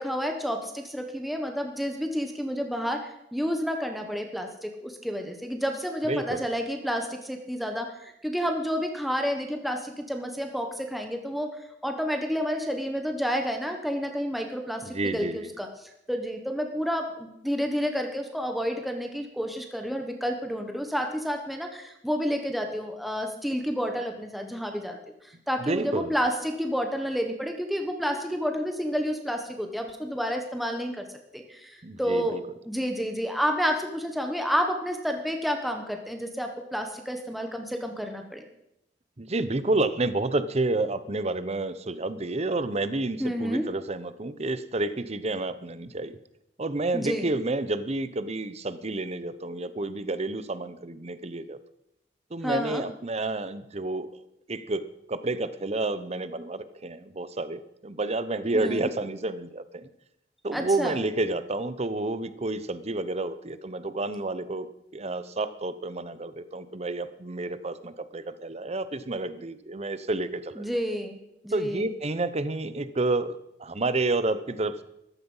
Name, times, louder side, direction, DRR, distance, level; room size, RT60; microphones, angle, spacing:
voice 1, 0.0-11.6 11.8-25.0 25.2-31.1 31.3-38.4 43.2-43.7 46.9-47.3 52.4-52.8 58.5-58.9 60.5-61.0 70.6-71.2 71.4-71.9, equal, ahead, 3 dB, 1.3 m, -30 dB
voice 2, 6.1-6.4 14.8-15.5 25.6-26.1 31.8-32.4 39.2-46.2 46.6-51.6 52.3-59.9 60.4-64.7 64.9-70.7 71.5-74.8, right 2 dB, 40° right, 13 dB, 0.9 m, -30 dB
14.0 x 13.5 x 5.6 m, 0.83 s
head